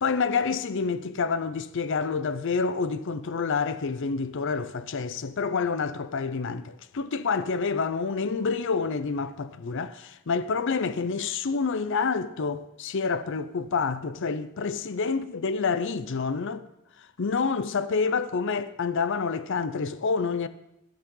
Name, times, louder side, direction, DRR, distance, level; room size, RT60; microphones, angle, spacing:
voice 1, 0.0-16.7 17.2-20.5, left 5 dB, 60° left, 0.6 m, -28 dB
12.5 x 11.5 x 3.8 m
head